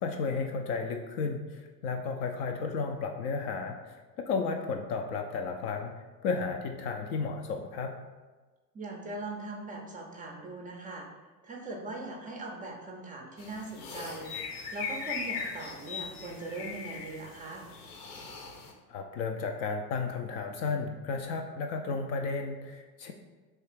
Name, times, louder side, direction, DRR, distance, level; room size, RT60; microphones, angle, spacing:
voice 1, 0.0-3.8 4.2-6.0 6.2-7.9 18.9-23.1, left 4 dB, 40° left, 4 dB, 0.4 m, -33 dB
voice 2, 8.7-11.1 11.4-14.3 14.7-17.6, right 2 dB, 20° right, 0 dB, 0.5 m, -40 dB
sound 1, 13.4-18.7, left 5 dB, 65° left, 0.8 m, -39 dB
3.3 x 3.2 x 4.5 m, 1.3 s
figure-of-eight pair, 70°, 49 cm